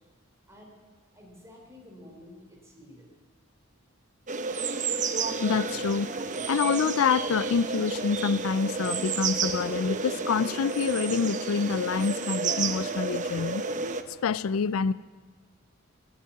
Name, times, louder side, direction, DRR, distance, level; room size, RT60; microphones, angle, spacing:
voice 1, 1.1-3.1, left 1 dB, 15° right, -1 dB, 3.6 m, -50 dB
sound 1, 4.3-14.0, right 4 dB, 35° right, 0.7 m, -31 dB
voice 2, 5.4-6.1 6.5-13.6 14.2-14.9, left 6 dB, 70° left, 18 dB, 0.4 m, -27 dB
18.0 x 8.6 x 8.4 m, 1.5 s
head